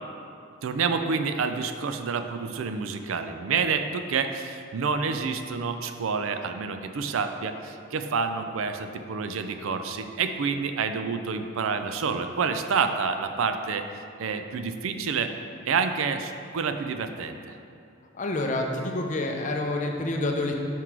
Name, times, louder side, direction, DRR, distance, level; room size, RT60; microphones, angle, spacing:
voice 1, 0.6-13.9 14.2-15.3 15.7-17.6, right 5 dB, 75° right, 8 dB, 0.4 m, -28 dB
voice 2, 18.1-20.5, left 2 dB, 35° left, 2 dB, 0.6 m, -28 dB
5.9 x 4.6 x 4.6 m, 2.5 s
head